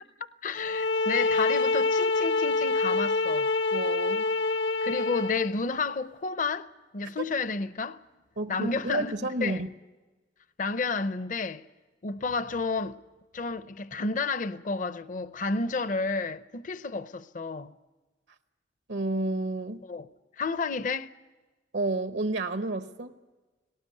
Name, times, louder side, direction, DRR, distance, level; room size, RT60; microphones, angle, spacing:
voice 1, 0.4-3.5 4.8-6.7 6.9-8.0 8.5-9.6 10.6-11.6 12.0-13.0 13.3-17.7 19.8-20.1 20.4-21.1, left 4 dB, 45° left, 0.6 m, -31 dB
sound 1, 0.6-5.5, left 3 dB, 80° left, 0.9 m, -26 dB
voice 2, 3.7-4.3 8.4-9.7 18.9-19.8 21.7-23.1, right 2 dB, 80° right, 0.9 m, -30 dB
18.5 x 18.0 x 9.4 m
head